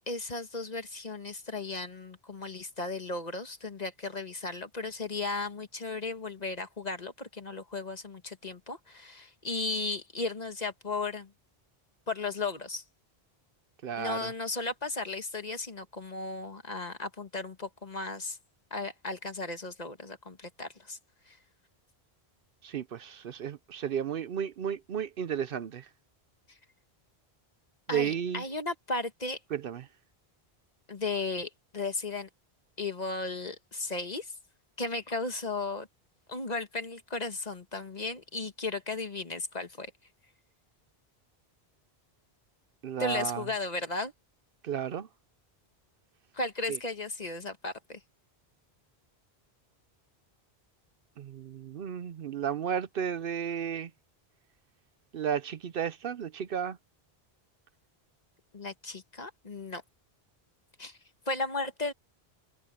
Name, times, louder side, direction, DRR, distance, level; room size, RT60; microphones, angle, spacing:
voice 1, 0.0-11.3 12.1-12.8 14.0-18.4 18.7-21.0 21.3-21.4 27.9-29.4 30.9-32.3 32.8-34.3 34.8-35.9 36.3-39.9 43.0-44.1 46.3-48.0 58.5-59.8 60.8-61.0 61.3-61.9, left 3 dB, 40° left, 1.6 m, -35 dB
voice 2, 13.8-14.3 22.6-25.9 27.9-28.4 29.5-29.9 42.8-43.4 44.6-45.1 46.7-46.8 51.2-53.9 55.1-56.8, right 8 dB, 65° right, 0.8 m, -33 dB
omnidirectional pair, 1.0 m